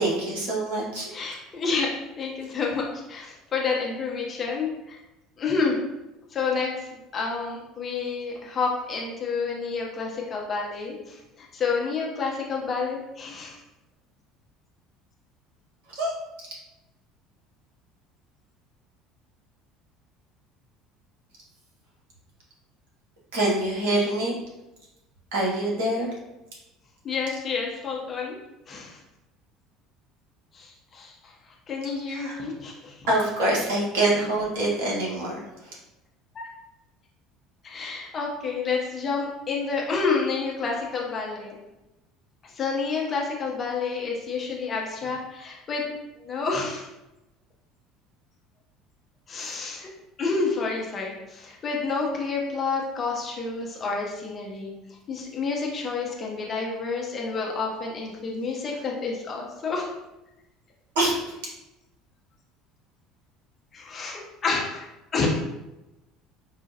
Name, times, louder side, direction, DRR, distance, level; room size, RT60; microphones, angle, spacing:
voice 1, 0.0-1.1 15.9-16.5 23.3-24.4 25.3-26.1 32.1-32.4 33.1-35.8 60.9-61.3, right 1 dB, 60° right, -4 dB, 1.2 m, -25 dB
voice 2, 1.1-1.9 2.2-5.0 5.4-5.8 6.3-13.6 27.0-28.4 28.7-29.0 30.5-31.3 31.7-33.1 36.3-36.4 37.6-41.6 42.4-45.9 46.2-46.9 49.3-49.9 50.2-54.7 55.1-59.9 63.7-64.9 65.1-65.3, left 4 dB, 35° left, -2 dB, 0.8 m, -29 dB
4.8 x 2.4 x 2.7 m, 0.97 s
figure-of-eight pair, 65°, 0 cm